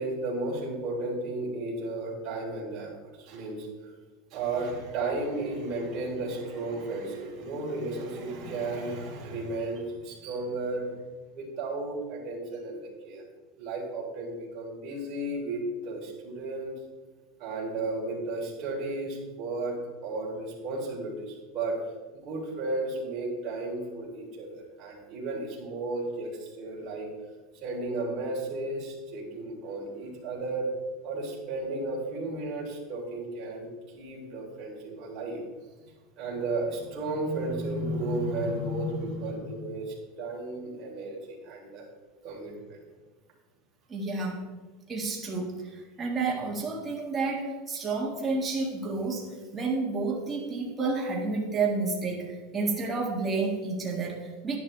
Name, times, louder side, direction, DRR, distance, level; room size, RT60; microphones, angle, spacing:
voice 1, 0.0-3.9 4.3-10.9 11.3-13.2 13.6-16.7 17.4-21.8 22.2-27.1 27.6-30.7 31.0-35.4 36.2-41.8 42.2-42.8, right 2 dB, 35° right, -4 dB, 3.4 m, -34 dB
voice 2, 43.9-44.4 44.9-54.6, right 3 dB, 15° right, -2 dB, 1.8 m, -30 dB
10.5 x 10.5 x 3.3 m, 1.2 s
supercardioid pair, 160°, 0 cm